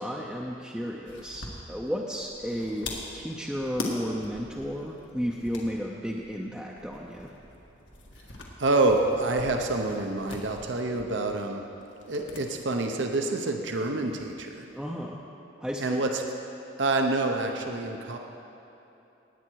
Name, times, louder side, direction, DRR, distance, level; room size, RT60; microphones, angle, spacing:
voice 1, 0.0-7.3 14.7-15.2 15.6-16.0, equal, ahead, -3 dB, 0.6 m, -33 dB
sound 1, 1.0-12.5 12.7-12.8 14.0-14.8, left 2 dB, 75° left, 1.7 m, -42 dB
voice 2, 8.6-11.6 12.1-14.7 15.8-16.2 16.8-18.2, right 2 dB, 70° right, 3 dB, 0.8 m, -27 dB
18.5 x 8.7 x 4.7 m, 2.9 s
head